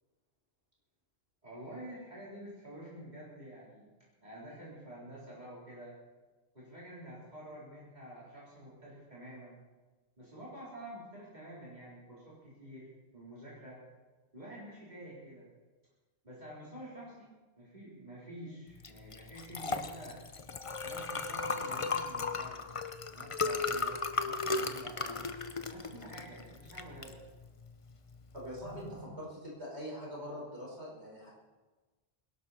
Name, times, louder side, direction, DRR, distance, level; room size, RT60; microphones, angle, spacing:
voice 1, 1.4-3.9 4.2-5.9 6.5-9.6 10.2-12.9 13.1-13.8 14.3-15.5 16.2-17.3 17.6-20.3 20.8-22.7 23.1-25.3 25.7-27.2 28.6-29.1, right 1 dB, 40° right, -8 dB, 4.0 m, -48 dB
Liquid, 18.8-29.0, left 4 dB, 35° left, 0.7 m, -36 dB
voice 2, 28.3-28.8 29.2-31.3, equal, 85° right, -4 dB, 5.1 m, -43 dB
21.5 x 12.0 x 4.2 m, 1.3 s
omnidirectional pair, 1.1 m